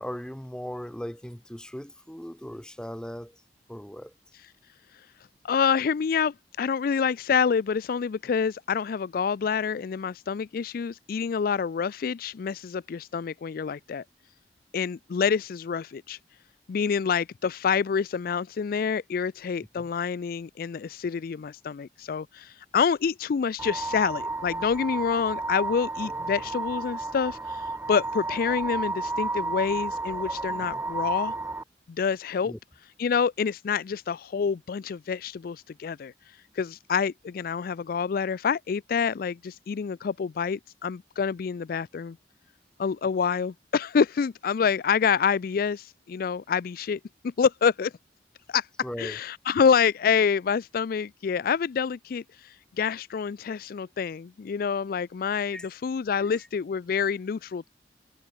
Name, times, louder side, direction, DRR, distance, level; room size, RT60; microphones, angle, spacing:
voice 1, 0.0-3.3 3.7-4.1 19.8-19.9 30.7-30.8 32.4-32.6 48.8-49.2 55.5-55.7 56.2-56.3, equal, 5° left, 0.9 m, -38 dB
voice 2, 5.4-14.0 14.7-16.2 16.7-31.3 31.9-32.5 33.0-36.1 36.6-42.2 42.8-47.9 48.5-48.7 49.0-57.7, left 6 dB, 55° left, 0.4 m, -27 dB
sound 1, 23.6-31.6, right 2 dB, 10° right, 0.6 m, -32 dB
head